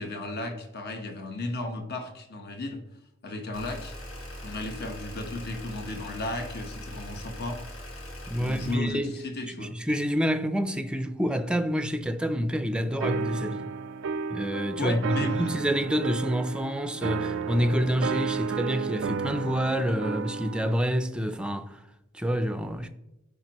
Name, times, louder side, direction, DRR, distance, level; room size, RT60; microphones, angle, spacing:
voice 1, 0.0-2.8 3.2-3.9 4.4-7.6 8.4-9.7 14.8-15.5, left 2 dB, 55° left, 1.3 m, -34 dB
sound 1, 3.5-8.7, left 1 dB, 70° left, 2.1 m, -41 dB
voice 2, 8.3-9.2 9.5-13.7 14.3-21.8 22.1-22.9, equal, 5° right, 0.5 m, -28 dB
sound 2, 13.0-20.8, right 5 dB, 65° right, 0.5 m, -32 dB
13.5 x 5.2 x 3.0 m
head